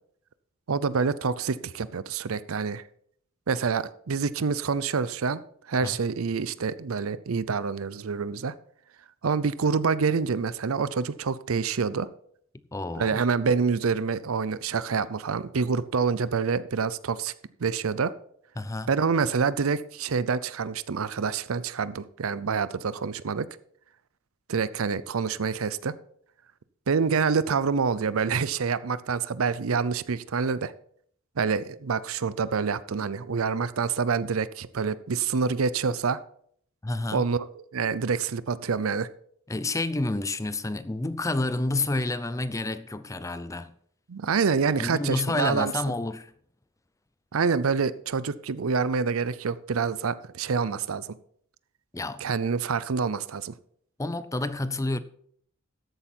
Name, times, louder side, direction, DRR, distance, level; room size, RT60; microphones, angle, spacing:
voice 1, 0.7-2.8 3.5-5.4 5.7-8.5 9.2-12.1 13.0-17.3 17.6-18.1 18.9-23.5 24.5-26.0 26.9-30.7 31.4-36.2 37.1-37.5 37.7-39.1 44.1-45.7 47.3-51.2 52.2-53.5, right 5 dB, 80° right, 0.6 m, -27 dB
voice 2, 12.7-13.2 18.6-18.9 36.8-37.3 39.5-43.7 44.8-46.3 51.9-52.3 54.0-55.0, left 2 dB, 15° left, 0.5 m, -29 dB
13.5 x 8.2 x 4.4 m
head